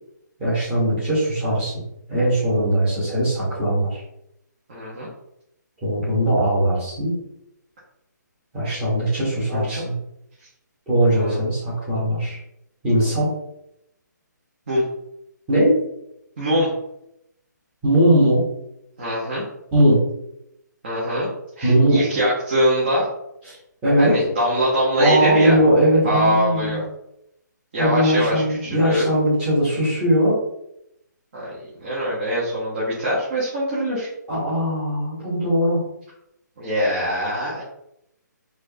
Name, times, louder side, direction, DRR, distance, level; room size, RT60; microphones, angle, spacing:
voice 1, 0.4-1.8 2.1-4.0 5.8-7.1 8.5-9.9 10.9-12.4 12.8-13.3 15.5-15.8 17.8-18.4 19.7-20.0 21.6-22.0 23.4-23.6 23.8-24.2 25.0-26.8 27.8-30.4 34.3-35.8, right 1 dB, 10° right, -10 dB, 1.1 m, -19 dB
voice 2, 4.7-5.1 9.5-9.8 11.2-11.4 14.7-14.8 16.4-16.7 19.0-19.4 20.8-21.3 21.6-23.1 24.0-25.5 26.0-26.8 27.7-29.1 31.3-31.5 31.8-34.1 36.6-37.6, equal, 30° right, -8 dB, 1.0 m, -23 dB
4.4 x 2.5 x 2.8 m, 0.80 s
hypercardioid pair, 175°, 10 cm